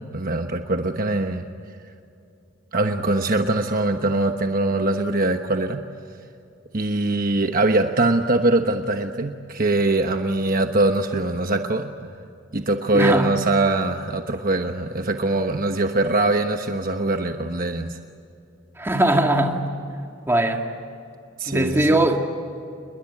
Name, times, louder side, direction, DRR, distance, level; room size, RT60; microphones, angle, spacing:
voice 1, 0.1-1.4 2.7-5.8 6.7-11.9 12.5-18.0 21.4-22.0, right 2 dB, 45° right, 1.1 m, -22 dB
voice 2, 12.9-13.3 18.8-19.7 20.3-20.6 21.5-22.3, right 1 dB, 10° right, 2.3 m, -20 dB
29.0 x 21.5 x 8.7 m
head